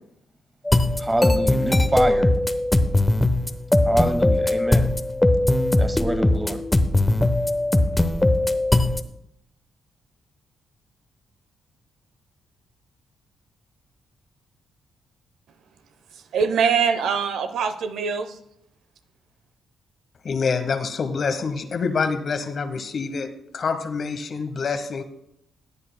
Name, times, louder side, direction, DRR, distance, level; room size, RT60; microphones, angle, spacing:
sound 1, 0.6-9.0, left 1 dB, 15° left, 0.8 m, -20 dB
voice 1, 1.0-2.3 3.8-4.9 5.8-6.6, right 1 dB, 20° right, 9 dB, 1.3 m, -26 dB
voice 2, 16.3-18.3, right 6 dB, 75° right, 9 dB, 0.7 m, -23 dB
voice 3, 20.2-23.3 23.5-25.0, left 5 dB, 55° left, 9 dB, 1.0 m, -26 dB
17.5 x 8.6 x 2.2 m, 0.76 s
supercardioid pair, 55°, 0 cm